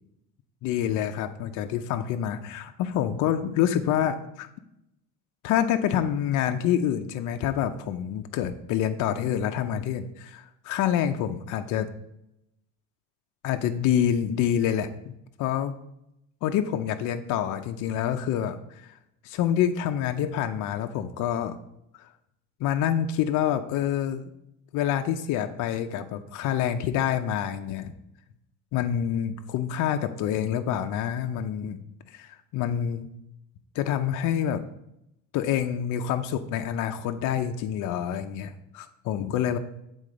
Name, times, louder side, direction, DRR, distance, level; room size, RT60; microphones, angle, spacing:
voice 1, 0.6-4.5 5.4-11.9 13.4-15.1 15.4-15.7 16.4-19.0 19.2-21.6 22.0-22.1 22.6-24.3 24.7-27.9 28.7-31.8 32.1-33.1 33.7-34.6 35.3-39.6, left 10 dB, 60° left, 7 dB, 0.5 m, -27 dB
8.2 x 3.8 x 5.0 m, 0.83 s
cardioid pair, 145°, 35 cm